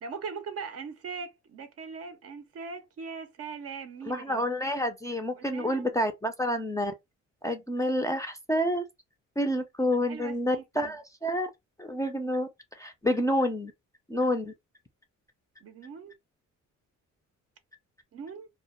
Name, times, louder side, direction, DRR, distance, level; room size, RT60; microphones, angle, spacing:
voice 1, 0.0-4.4 5.4-5.9 10.0-11.0 15.6-16.1 18.1-18.5, right 5 dB, 50° right, 0.5 m, -40 dB
voice 2, 4.1-6.9 7.4-8.9 9.4-11.5 11.8-12.5 12.8-13.7 14.1-14.5, equal, 10° left, 0.4 m, -28 dB
2.1 x 2.0 x 2.9 m
cardioid pair, 90°, 30 cm